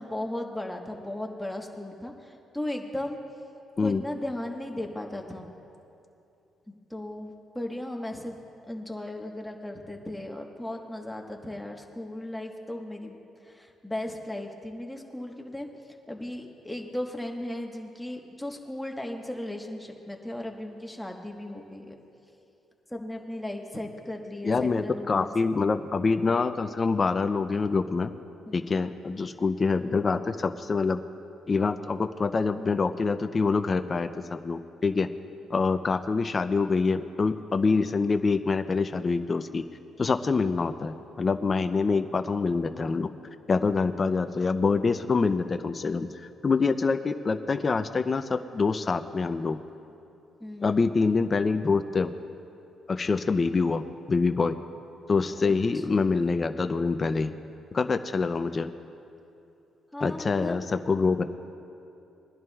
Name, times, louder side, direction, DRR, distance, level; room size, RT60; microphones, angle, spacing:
voice 1, 0.0-2.1 2.5-3.2 3.8-5.5 6.9-8.4 8.7-13.2 13.6-15.7 16.1-21.9 22.9-25.5 28.5-28.8 50.4-50.9 55.4-55.5 55.9-56.0 59.9-60.6, left 1 dB, 5° left, 1 dB, 1.3 m, -36 dB
voice 2, 24.4-28.1 28.5-31.0 31.5-35.1 35.5-39.6 40.0-43.1 43.5-46.1 46.4-49.6 50.6-52.1 52.9-53.8 54.1-54.5 55.1-57.3 57.7-58.7 60.0-61.2, left 4 dB, 35° left, 9 dB, 0.5 m, -25 dB
22.0 x 11.0 x 2.4 m, 2.7 s
cardioid pair, 90°, 0 cm